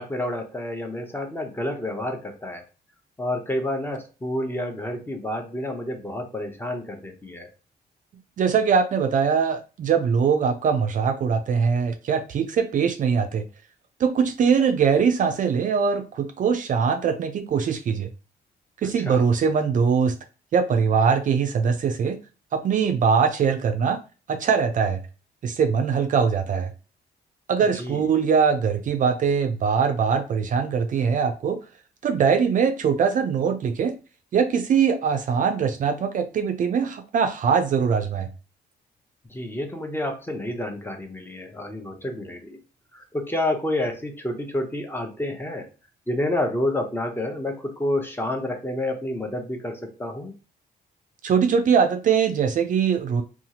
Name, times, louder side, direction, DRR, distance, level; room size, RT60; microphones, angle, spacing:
voice 1, 0.0-2.6 3.2-7.5 19.0-19.2 27.6-28.0 39.3-42.6 42.9-45.7 46.1-50.3, left 1 dB, 10° left, 4 dB, 0.6 m, -29 dB
voice 2, 8.4-13.4 14.0-18.1 18.8-20.2 20.5-22.2 22.5-24.0 24.3-25.0 25.4-26.7 27.5-31.6 32.0-34.0 34.3-38.3 51.2-53.2, right 6 dB, 50° right, 7 dB, 0.4 m, -22 dB
2.7 x 2.3 x 2.8 m, 0.33 s
cardioid pair, 110°, 17 cm